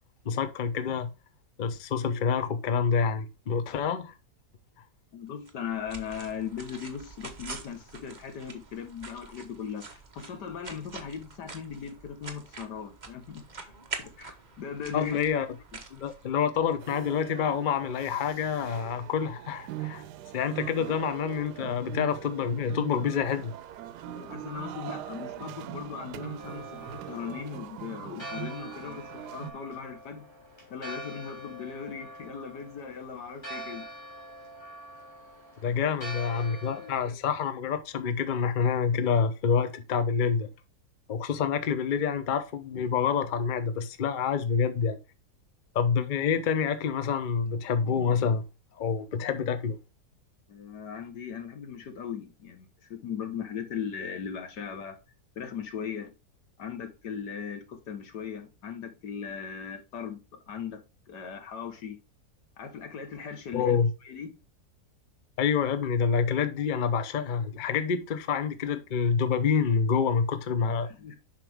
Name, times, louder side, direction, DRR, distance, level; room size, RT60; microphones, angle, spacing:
voice 1, 0.2-1.1 1.6-4.1 14.9-15.5 15.9-20.0 20.3-23.5 35.6-40.5 41.1-45.0 45.7-48.4 48.8-49.8 63.5-63.9 65.4-70.9, left 6 dB, 40° left, 0.7 m, -27 dB
voice 2, 5.1-15.2 24.1-30.2 30.7-33.9 35.8-35.9 36.5-37.2 50.5-55.0 55.4-56.1 56.6-60.8 61.1-62.0 62.6-63.8 64.0-64.3 70.6-71.1, left 7 dB, 85° left, 2.0 m, -38 dB
sound 1, 5.5-16.8, right 4 dB, 30° right, 1.1 m, -45 dB
sound 2, 16.8-29.5, right 13 dB, 80° right, 1.2 m, -41 dB
Church bell, 26.4-37.0, equal, 15° left, 3.2 m, -44 dB
7.5 x 5.7 x 3.5 m
omnidirectional pair, 1.8 m